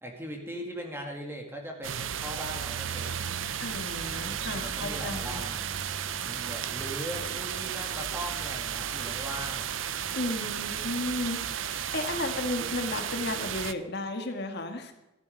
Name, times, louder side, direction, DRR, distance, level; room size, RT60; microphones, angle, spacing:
voice 1, 0.0-3.4 4.1-4.2 4.6-5.7 6.2-9.7 10.4-10.8, equal, 10° right, 1 dB, 2.1 m, -40 dB
sound 1, 1.8-13.7, right 9 dB, 75° right, 0.6 m, -34 dB
voice 2, 3.6-5.4 10.1-14.9, left 2 dB, 55° left, 5 dB, 1.6 m, -34 dB
14.0 x 11.0 x 5.2 m, 1.0 s
head